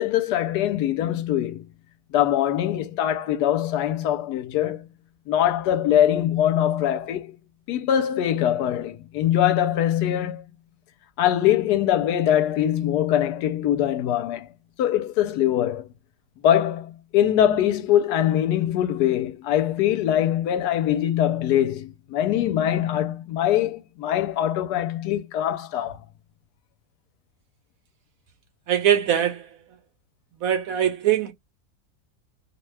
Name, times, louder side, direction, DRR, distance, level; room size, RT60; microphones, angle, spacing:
voice 1, 0.0-1.6 2.1-4.8 5.3-7.4 7.7-10.4 11.2-14.5 14.8-15.9 16.4-26.0, left 11 dB, 75° left, 1.1 m, -22 dB
voice 2, 28.7-29.5 30.4-31.3, right 10 dB, 70° right, 0.9 m, -22 dB
2.8 x 2.2 x 3.1 m
omnidirectional pair, 1.8 m